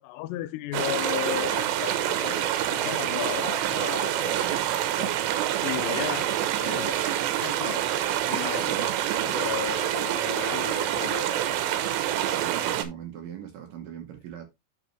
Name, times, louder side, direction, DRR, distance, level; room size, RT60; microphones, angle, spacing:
voice 1, 0.0-4.6 5.0-5.2 5.6-6.3 6.6-7.0 7.3-7.8 8.3-8.9 9.2-11.7, left 14 dB, 85° left, 2.7 m, -35 dB
sound 1, 0.7-12.9, right 11 dB, 85° right, 3.1 m, -27 dB
voice 2, 4.2-4.7 5.9-6.3 6.7-7.0 8.6-8.9 12.2-14.5, right 9 dB, 70° right, 2.3 m, -40 dB
9.2 x 5.7 x 3.1 m
omnidirectional pair, 4.9 m